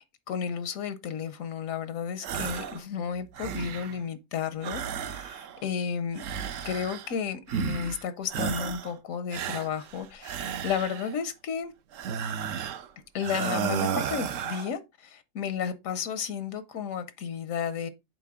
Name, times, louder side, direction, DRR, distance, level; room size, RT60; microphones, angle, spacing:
voice 1, 0.0-6.2 6.6-11.7 13.1-17.9, left 7 dB, 85° left, 1.1 m, -33 dB
Raspy Gasps and Sighs, 2.2-2.8 3.2-4.0 4.6-5.7 6.1-7.2 7.5-8.0 8.3-8.9 9.3-11.2 11.9-12.9 13.2-14.7, right 8 dB, 75° right, 1.0 m, -33 dB
7.5 x 4.4 x 3.6 m
omnidirectional pair, 1.4 m